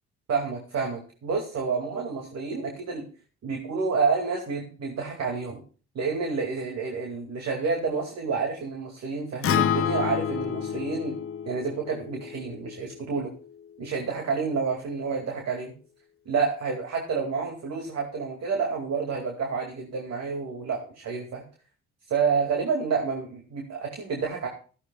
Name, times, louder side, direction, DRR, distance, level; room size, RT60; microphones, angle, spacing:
voice 1, 0.3-3.1 3.4-5.6 5.9-11.2 11.5-13.3 13.8-15.7 16.3-21.4 22.1-24.5, right 5 dB, 60° right, 1 dB, 2.4 m, -29 dB
Acoustic guitar, 9.4-13.7, left 8 dB, 45° left, 0.7 m, -29 dB
15.5 x 13.5 x 2.3 m, 0.38 s
cardioid pair, 90°, 30 cm